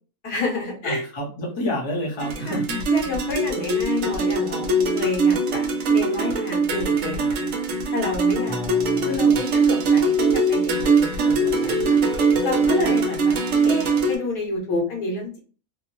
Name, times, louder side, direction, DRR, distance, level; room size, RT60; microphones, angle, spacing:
voice 1, 0.2-1.0 2.5-2.6 2.9-7.5 7.9-8.6 9.0-15.4, left 2 dB, 75° left, 0 dB, 1.5 m, -29 dB
voice 2, 0.8-2.8 8.5-9.4, left 1 dB, 30° left, -1 dB, 0.5 m, -29 dB
sound 1, 2.2-14.2, right 3 dB, 65° right, 0.9 m, -21 dB
3.3 x 2.0 x 3.0 m, 0.37 s
omnidirectional pair, 1.7 m